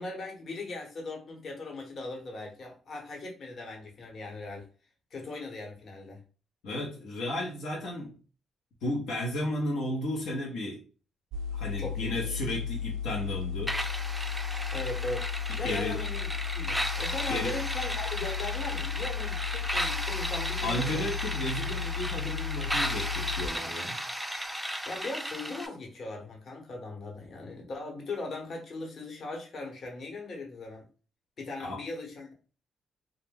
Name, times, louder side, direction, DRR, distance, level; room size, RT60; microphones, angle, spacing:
voice 1, 0.0-4.7 5.1-6.2 11.8-12.3 14.7-21.1 24.9-30.8 31.4-32.3, left 2 dB, 55° left, 1.0 m, -39 dB
voice 2, 6.6-8.1 8.8-10.8 11.5-13.8 15.6-16.0 17.3-17.5 20.6-24.0 31.6-31.8, left 1 dB, 85° left, 0.7 m, -33 dB
sound 1, 11.3-23.5, left 8 dB, 75° right, 0.3 m, -34 dB
sound 2, 13.7-25.7, equal, ahead, 0.3 m, -35 dB
2.3 x 2.1 x 3.3 m
cardioid pair, 90°, 0 cm